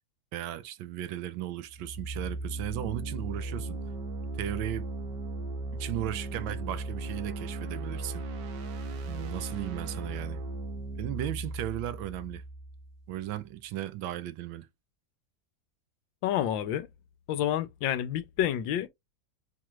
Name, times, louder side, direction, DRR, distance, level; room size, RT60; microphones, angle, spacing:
voice 1, 0.3-3.8 4.4-4.9 5.7-8.2 9.1-10.4 11.0-12.4 13.1-14.7, right 13 dB, 85° right, 1.4 m, -36 dB
sound 1, 1.6-13.4, right 2 dB, 70° right, 1.6 m, -37 dB
voice 2, 16.2-16.9 17.3-18.9, left 11 dB, 85° left, 1.4 m, -29 dB
4.5 x 3.0 x 2.3 m
omnidirectional pair, 2.1 m